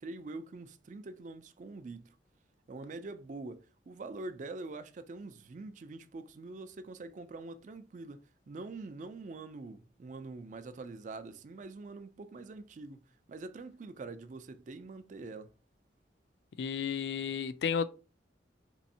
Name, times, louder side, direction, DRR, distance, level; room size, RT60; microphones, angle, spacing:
voice 1, 0.0-2.2 2.7-13.0 13.3-15.5, right 3 dB, 45° right, 0.4 m, -45 dB
voice 2, 16.6-17.8, left 7 dB, 65° left, 0.3 m, -32 dB
3.4 x 3.0 x 2.7 m
head